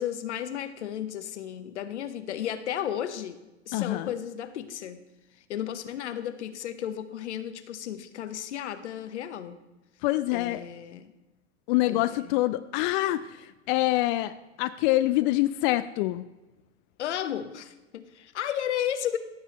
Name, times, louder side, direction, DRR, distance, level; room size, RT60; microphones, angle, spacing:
voice 1, 0.0-3.4 3.7-5.0 5.5-9.6 10.3-11.1 11.9-12.4 17.0-19.2, left 10 dB, 75° left, 11 dB, 0.9 m, -34 dB
voice 2, 3.7-4.1 10.0-10.6 11.7-14.3 14.6-16.2, left 16 dB, 45° left, 12 dB, 0.4 m, -25 dB
15.5 x 7.3 x 3.0 m, 1.1 s
hypercardioid pair, 90°, 35 cm